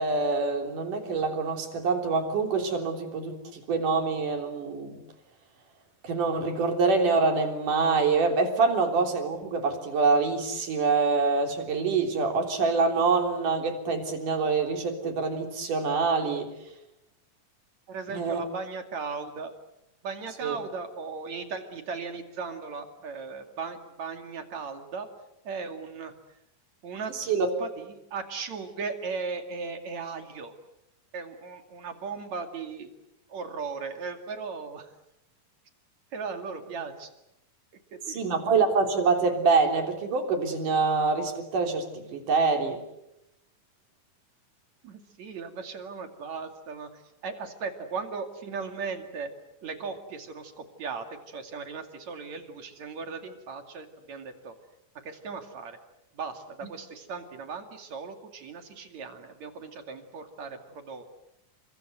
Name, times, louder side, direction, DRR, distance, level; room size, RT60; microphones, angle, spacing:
voice 1, 0.0-5.0 6.0-16.5 18.1-18.4 20.4-20.6 27.3-27.5 38.1-42.8, right 4 dB, 75° right, 4 dB, 5.0 m, -25 dB
voice 2, 17.9-19.5 20.0-25.1 25.5-26.1 26.8-30.6 31.1-32.9 33.3-34.9 36.1-37.1 37.9-38.2 44.8-49.3 49.6-54.5 55.0-55.8 56.1-61.0, right 5 dB, 60° right, 6 dB, 3.7 m, -37 dB
30.0 x 24.0 x 8.1 m, 0.83 s
omnidirectional pair, 3.7 m